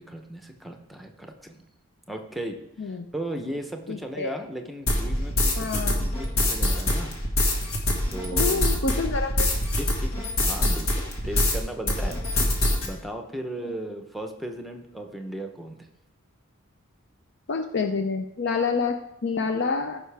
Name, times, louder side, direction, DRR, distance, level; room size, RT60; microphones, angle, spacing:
voice 1, 0.0-1.6 2.1-7.2 8.1-8.8 9.8-12.2 12.8-15.8, right 1 dB, ahead, 4 dB, 0.7 m, -36 dB
voice 2, 3.9-4.3 5.6-6.1 8.3-9.5 13.6-13.7 17.5-20.0, left 4 dB, 55° left, 5 dB, 0.5 m, -28 dB
sound 1, 4.9-11.6 11.9-12.9, left 1 dB, 70° left, 1.8 m, -24 dB
14.5 x 5.5 x 3.4 m, 0.86 s
head